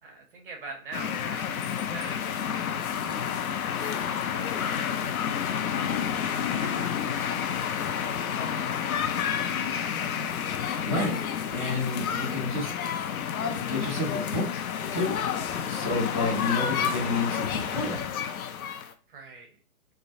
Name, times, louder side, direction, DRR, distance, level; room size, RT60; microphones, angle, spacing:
voice 1, 0.0-2.9 4.3-5.3 6.5-8.6 19.1-19.5, right 3 dB, 35° right, 1 dB, 0.7 m, -45 dB
sound 1, 0.9-18.9, left 8 dB, 70° left, 0.5 m, -30 dB
voice 2, 10.8-11.2 11.5-12.7 13.5-14.5 14.9-15.2 15.7-18.0, left 3 dB, 15° left, -12 dB, 0.4 m, -29 dB
2.2 x 2.0 x 2.7 m, 0.36 s
figure-of-eight pair, 135°, 45 cm